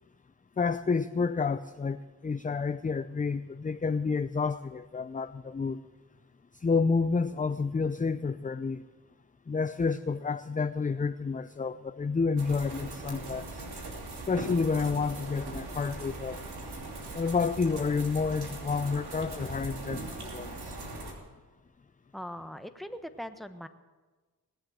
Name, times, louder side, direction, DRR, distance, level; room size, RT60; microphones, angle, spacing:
voice 1, 0.6-5.8 6.6-8.8 9.5-13.6 14.3-16.4 17.1-20.8, left 4 dB, 20° left, 12 dB, 0.5 m, -30 dB
sound 1, 12.4-21.1, right 2 dB, 80° right, 3.1 m, -40 dB
voice 2, 22.1-23.7, equal, ahead, 9 dB, 1.2 m, -40 dB
19.0 x 7.7 x 8.9 m, 1.3 s
supercardioid pair, 45°, 39 cm